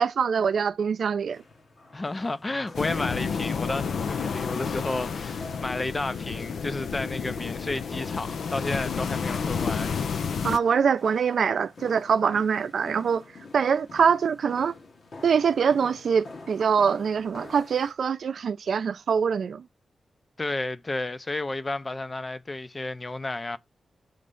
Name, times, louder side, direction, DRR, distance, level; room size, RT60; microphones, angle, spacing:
voice 1, 0.0-1.4 10.4-13.2 13.5-14.7 15.2-19.7, right 6 dB, 75° right, 0.5 m, -24 dB
sound 1, 1.3-17.9, left 3 dB, 60° left, 1.3 m, -48 dB
voice 2, 1.9-10.0 20.4-23.6, left 2 dB, 25° left, 0.5 m, -32 dB
sound 2, 2.7-10.6, left 6 dB, 80° left, 0.5 m, -30 dB
6.3 x 3.2 x 5.2 m
wide cardioid pair, 120°, 0 cm